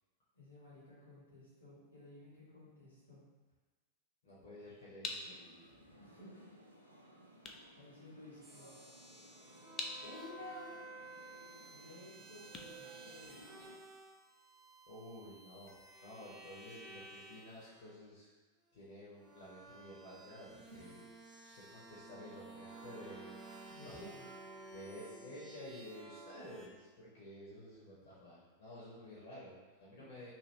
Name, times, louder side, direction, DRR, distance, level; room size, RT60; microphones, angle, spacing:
voice 1, 0.3-3.2 5.9-6.6 7.7-8.7 10.0-10.8 11.7-13.6 20.6-21.0 23.7-24.3 29.9-30.1, left 1 dB, 80° left, -7 dB, 1.3 m, -54 dB
voice 2, 4.2-5.6 14.9-15.7 16.0-18.3 18.7-21.0 21.4-23.3 23.8-24.0 24.7-30.3, left 1 dB, 55° left, -8 dB, 0.8 m, -52 dB
sound 1, 5.0-13.8, left 3 dB, 30° left, 0.4 m, -49 dB
sound 2, 5.2-13.8, equal, 90° right, 0.4 m, -59 dB
sound 3, 8.4-17.9 18.7-26.7, right 2 dB, 25° right, 0.5 m, -54 dB
2.8 x 2.6 x 3.2 m, 1.3 s
figure-of-eight pair, 90°, 0 cm